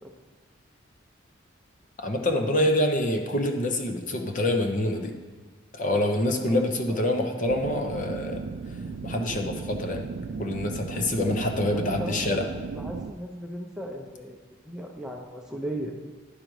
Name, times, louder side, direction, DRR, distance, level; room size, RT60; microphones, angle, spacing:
voice 1, 2.0-5.1 5.7-8.4 9.0-10.0 10.4-12.4, left 1 dB, 40° left, 4 dB, 0.7 m, -26 dB
voice 2, 6.5-7.0 11.2-12.4 12.7-14.4 14.6-15.9, equal, 5° right, 1 dB, 0.6 m, -37 dB
sound 1, 7.5-13.1, right 4 dB, 50° right, 0.3 m, -36 dB
10.0 x 5.1 x 4.6 m, 1.5 s
head